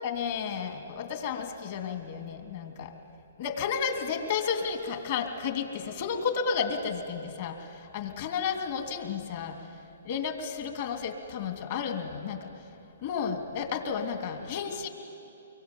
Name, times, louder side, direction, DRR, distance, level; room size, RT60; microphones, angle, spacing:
voice 1, 0.0-2.9 3.4-12.5 13.0-14.9, left 6 dB, 50° left, 5 dB, 2.9 m, -32 dB
24.5 x 23.0 x 9.1 m, 2.7 s
hypercardioid pair, 140°, 0 cm